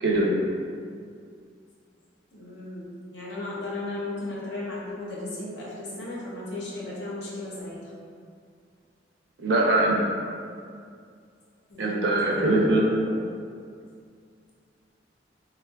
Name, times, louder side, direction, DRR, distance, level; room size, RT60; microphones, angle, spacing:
voice 1, 0.0-0.3 9.4-10.1 11.8-12.8, right 2 dB, 75° right, -2 dB, 0.5 m, -22 dB
voice 2, 2.3-7.8 11.7-12.5, left 2 dB, 75° left, -6 dB, 0.7 m, -35 dB
3.5 x 2.3 x 2.3 m, 2.3 s
head